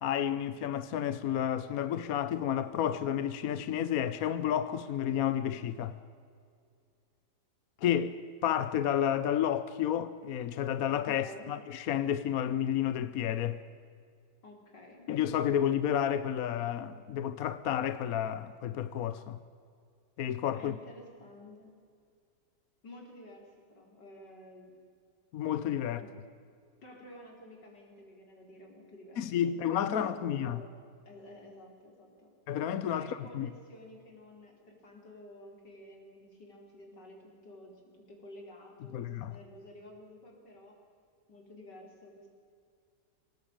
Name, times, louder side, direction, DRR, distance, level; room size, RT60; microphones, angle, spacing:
voice 1, 0.0-6.0 7.8-13.6 15.1-19.4 20.2-20.7 25.3-26.0 29.2-30.6 32.5-33.5 38.9-39.3, left 10 dB, 60° left, 1.1 m, -31 dB
voice 2, 10.9-11.5 14.4-15.1 20.5-21.7 22.8-24.8 25.7-26.1 26.8-30.7 31.0-32.3 32.9-37.2 37.4-40.8 41.3-42.3, left 1 dB, 80° left, 5.1 m, -52 dB
24.5 x 18.5 x 9.0 m
omnidirectional pair, 1.8 m